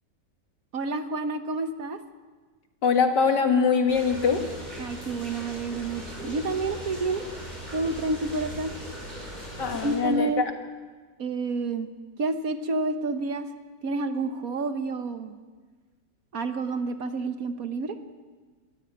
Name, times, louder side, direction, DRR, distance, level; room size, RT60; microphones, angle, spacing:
voice 1, 0.7-2.0 4.8-7.2 7.7-8.7 9.8-10.5 11.2-11.9 12.2-13.4 13.8-15.3 16.3-18.0, right 3 dB, 60° right, 9 dB, 1.5 m, -29 dB
voice 2, 2.8-4.5 9.6-10.5, left 6 dB, 75° left, 5 dB, 2.5 m, -23 dB
sound 1, 3.9-10.0, right 1 dB, 25° right, 5.5 m, -39 dB
23.5 x 14.0 x 9.0 m, 1.4 s
omnidirectional pair, 1.9 m